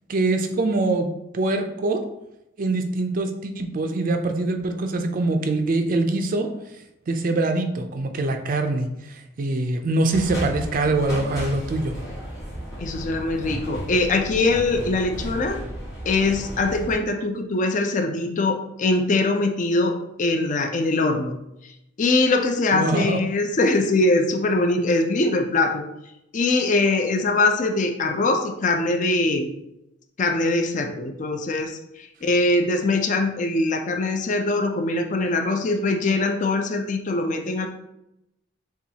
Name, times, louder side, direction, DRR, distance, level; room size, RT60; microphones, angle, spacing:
voice 1, 0.1-1.1 1.3-2.0 2.6-6.5 7.1-11.9 22.7-23.2, right 2 dB, 45° right, 6 dB, 0.4 m, -24 dB
sound 1, 10.1-17.0, equal, 15° left, 1.5 m, -33 dB
voice 2, 12.8-15.6 16.1-21.3 22.0-25.8 26.3-29.5 30.2-37.7, left 2 dB, 40° left, 5 dB, 0.4 m, -22 dB
6.9 x 2.3 x 2.8 m, 0.87 s
head